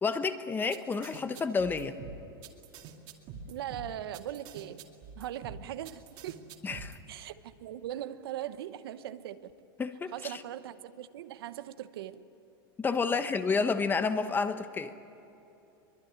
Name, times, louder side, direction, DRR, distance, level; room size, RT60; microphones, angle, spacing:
voice 1, 0.0-2.0 6.6-7.0 9.8-10.1 12.8-14.9, left 4 dB, 15° left, 10 dB, 1.1 m, -30 dB
sound 1, 0.7-7.0, right 5 dB, 45° right, 2.5 m, -46 dB
voice 2, 3.5-4.8 5.1-6.5 7.1-9.5 10.1-12.3 13.1-13.3, right 11 dB, 80° right, 12 dB, 1.1 m, -40 dB
23.5 x 21.5 x 9.6 m, 2.9 s
supercardioid pair, 135°, 12 cm